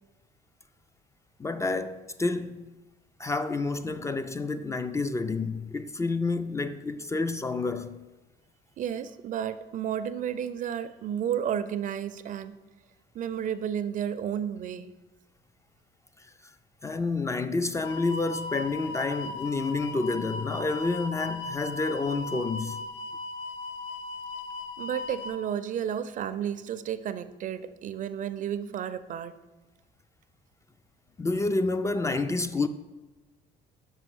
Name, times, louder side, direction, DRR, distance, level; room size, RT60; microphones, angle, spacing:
voice 1, 1.4-2.8 3.2-8.0 16.8-22.8 31.2-32.7, left 3 dB, 15° left, 0.3 m, -29 dB
voice 2, 8.8-12.6 13.1-14.9 24.8-29.4, right 9 dB, 50° right, 0.5 m, -32 dB
sound 1, 17.7-25.4, left 3 dB, 85° left, 0.7 m, -37 dB
5.7 x 5.5 x 6.1 m
cardioid pair, 110°, 17 cm